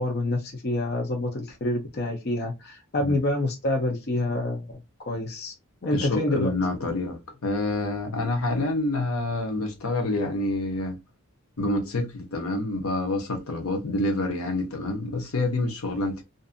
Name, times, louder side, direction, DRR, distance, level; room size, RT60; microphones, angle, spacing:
voice 1, 0.0-4.7 5.0-5.5 5.8-6.5, left 2 dB, 45° left, 0.6 m, -27 dB
voice 2, 5.9-11.0 11.6-16.2, left 2 dB, 80° left, 0.8 m, -27 dB
2.6 x 2.5 x 2.5 m
head